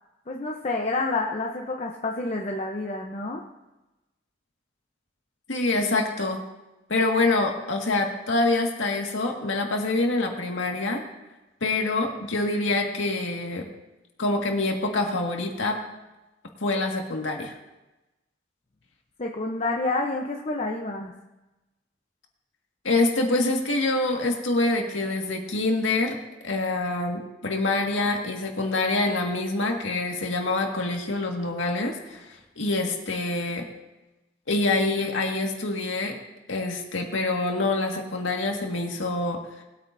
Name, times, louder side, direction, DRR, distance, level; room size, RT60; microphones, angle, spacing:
voice 1, 0.3-3.4 19.2-21.1, left 2 dB, 35° left, 0 dB, 0.8 m, -29 dB
voice 2, 5.5-6.4 6.9-11.0 11.6-13.7 14.2-15.8 16.6-17.6 22.8-26.1 26.4-32.3 32.6-33.7 34.5-36.1 36.5-39.4, left 2 dB, 90° left, 1 dB, 1.8 m, -26 dB
19.5 x 8.8 x 2.7 m, 1.0 s
head